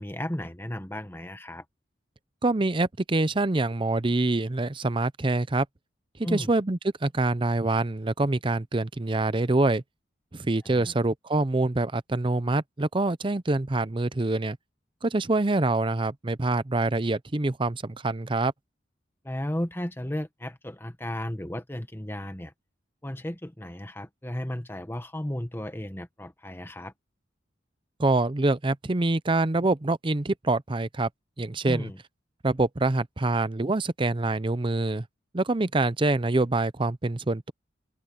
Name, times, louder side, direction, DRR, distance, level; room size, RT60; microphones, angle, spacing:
voice 1, 0.0-1.6 6.2-6.5 10.6-10.9 19.2-22.5 23.0-26.9 31.6-32.0, left 1 dB, 10° left, 1.3 m, -34 dB
voice 2, 2.4-5.7 6.3-9.8 10.3-14.6 15.0-18.5 28.0-31.1 31.4-31.9 32.4-35.1 35.3-37.5, right 2 dB, 25° right, 0.6 m, -25 dB
open air
head